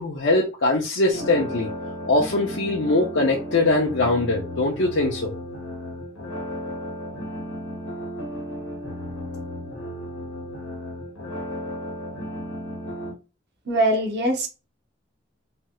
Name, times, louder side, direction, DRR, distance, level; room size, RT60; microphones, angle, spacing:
voice 1, 0.0-1.7 2.1-5.3, left 2 dB, 70° left, -2 dB, 0.7 m, -22 dB
sound 1, 1.1-13.1, equal, 85° left, 1.1 m, -34 dB
voice 2, 13.7-14.5, right 1 dB, 60° right, 2 dB, 0.9 m, -22 dB
3.3 x 3.0 x 2.3 m, 0.30 s
head